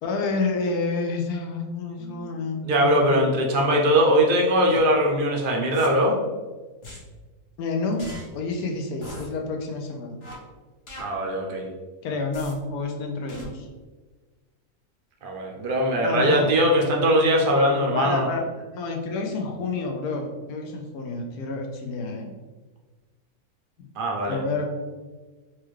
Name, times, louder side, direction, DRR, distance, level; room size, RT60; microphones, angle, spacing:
voice 1, 0.0-3.3 7.6-10.2 12.0-13.7 16.0-16.5 17.9-22.3 23.8-23.9 24.3-24.6, left 3 dB, 85° left, 2 dB, 1.1 m, -29 dB
voice 2, 2.6-6.2 11.0-11.7 15.2-18.3 24.0-24.4, equal, 55° right, 0 dB, 0.5 m, -21 dB
sound 1, 4.6-4.8 5.7-5.9 6.8-7.0 8.0-8.2 9.0-9.3 10.2-10.3 10.9-11.0 12.3-12.5 13.3-13.4, equal, 55° left, 1.2 m, -40 dB
4.4 x 2.4 x 3.1 m, 1.3 s
omnidirectional pair, 1.6 m